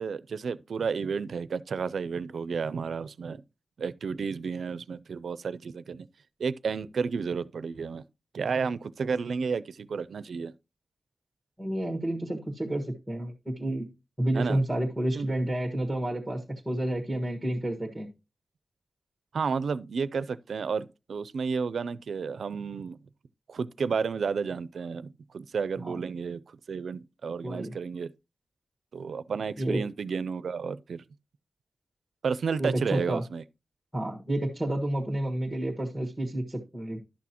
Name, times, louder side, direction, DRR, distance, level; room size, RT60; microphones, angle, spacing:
voice 1, 0.0-3.4 3.8-6.1 6.4-8.0 8.3-10.5 14.4-14.6 15.1-15.3 19.3-23.0 23.5-28.1 28.9-31.0 32.2-33.4, right 5 dB, 80° right, 0.4 m, -32 dB
voice 2, 11.6-13.9 14.2-18.1 25.8-25.9 27.4-27.7 29.6-29.8 32.6-33.2 33.9-37.0, right 1 dB, 5° right, 1.4 m, -30 dB
11.0 x 6.2 x 2.9 m
wide cardioid pair, 95°, 0 cm